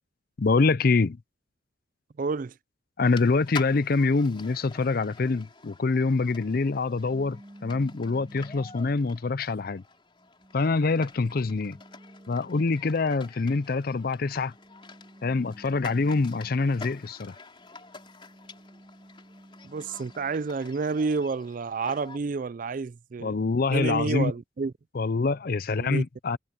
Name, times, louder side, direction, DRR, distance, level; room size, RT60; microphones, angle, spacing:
voice 1, 0.4-1.2 3.0-9.8 10.5-11.8 12.3-14.5 15.2-17.4 23.2-24.3 24.9-26.4, left 3 dB, 50° left, 0.5 m, -25 dB
voice 2, 2.2-2.5 19.6-23.3 23.7-24.7 25.8-26.0, right 4 dB, 45° right, 0.4 m, -29 dB
sound 1, 3.0-22.2, left 4 dB, 25° left, 3.9 m, -47 dB
sound 2, 7.1-9.3 9.9-13.0 14.2-17.1 17.6-20.5, equal, 20° right, 2.7 m, -52 dB
head